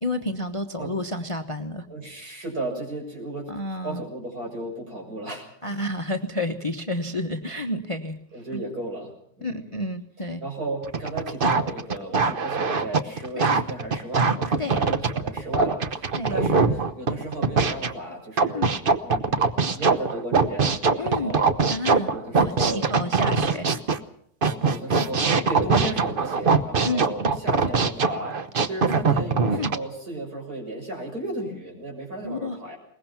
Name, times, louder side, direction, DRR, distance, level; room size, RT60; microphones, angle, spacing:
voice 1, 0.0-1.9 3.5-4.0 5.6-8.2 8.5-8.6 9.4-10.4 13.4-13.6 14.6-14.8 16.2-16.4 18.5-18.7 21.0-21.3 21.7-22.1 22.4-23.7 25.7-25.8 26.8-27.3 29.5-29.7 32.2-32.6, left 1 dB, 20° left, 6 dB, 1.1 m, -30 dB
voice 2, 1.9-3.5 3.8-5.8 8.3-9.7 10.4-18.7 19.0-19.5 19.7-21.5 22.1-22.8 24.7-32.8, right 1 dB, 60° right, 2 dB, 7.1 m, -34 dB
sound 1, 10.8-17.9 18.4-24.0 24.4-29.8, right 4 dB, 40° right, 1.0 m, -22 dB
22.0 x 20.0 x 5.9 m, 0.68 s
omnidirectional pair, 1.8 m